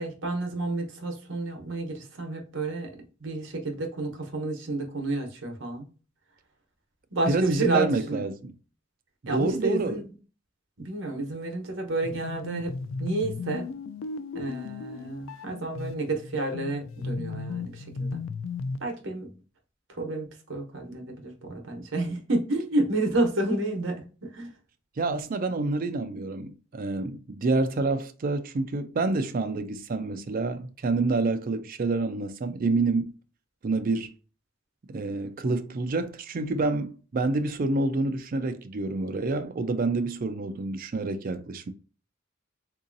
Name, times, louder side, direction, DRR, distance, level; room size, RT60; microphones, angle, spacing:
voice 1, 0.0-2.9 3.2-5.9 7.1-8.2 9.3-10.0 10.8-12.7 13.0-13.7 14.3-18.2 18.8-19.3 20.0-24.5, right 2 dB, 75° right, 1.0 m, -30 dB
voice 2, 7.3-8.5 9.2-10.0 25.0-33.1 33.6-34.1 34.9-41.7, right 3 dB, 45° right, 0.4 m, -28 dB
sound 1, 12.0-18.9, left 4 dB, 80° left, 0.3 m, -35 dB
3.7 x 2.7 x 2.6 m
head